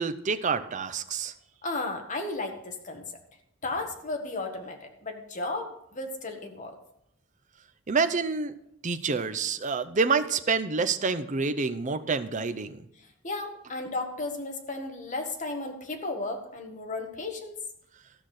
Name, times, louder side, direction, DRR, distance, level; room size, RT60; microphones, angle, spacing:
voice 1, 0.0-1.3 7.9-8.5 8.8-12.8, right 4 dB, 40° right, 10 dB, 0.6 m, -27 dB
voice 2, 1.6-3.1 3.6-6.8 13.2-17.6, left 2 dB, 40° left, 4 dB, 1.5 m, -34 dB
13.5 x 5.9 x 6.5 m, 0.78 s
head